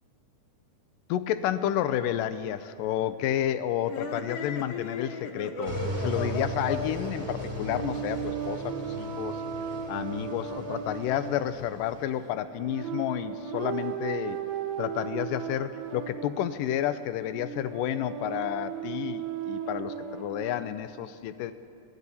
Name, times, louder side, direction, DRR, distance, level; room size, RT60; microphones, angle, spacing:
voice 1, 1.1-9.4 9.9-14.4 14.8-21.5, left 11 dB, 85° left, 12 dB, 2.3 m, -31 dB
sound 1, 3.8-8.5, left 4 dB, 60° left, 1.9 m, -37 dB
sound 2, 5.6-12.0, right 1 dB, 25° right, 1.7 m, -37 dB
sound 3, 7.6-20.6, right 8 dB, 70° right, 2.0 m, -36 dB
21.5 x 14.5 x 4.2 m, 2.7 s
omnidirectional pair, 3.8 m